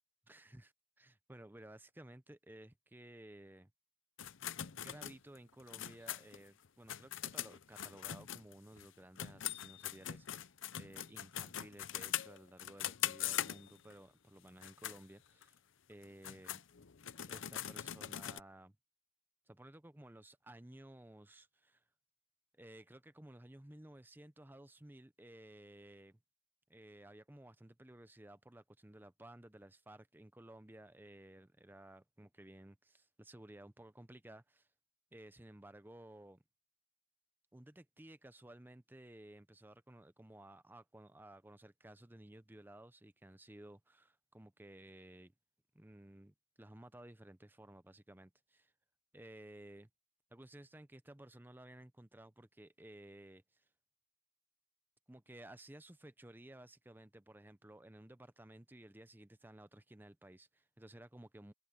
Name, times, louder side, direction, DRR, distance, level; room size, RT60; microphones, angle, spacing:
voice 1, 0.3-3.7 4.8-10.5 10.8-15.6 15.9-16.6 17.2-18.8 19.5-21.8 22.5-26.2 26.7-34.7 35.1-36.4 37.5-45.3 45.7-48.7 49.1-49.9 50.3-53.7 55.1-61.5, right 1 dB, 10° right, 0.6 m, -56 dB
sound 1, 4.2-8.9 9.2-13.9 14.5-15.0 15.4-15.5 16.0-18.4, left 11 dB, 70° left, 0.7 m, -42 dB
head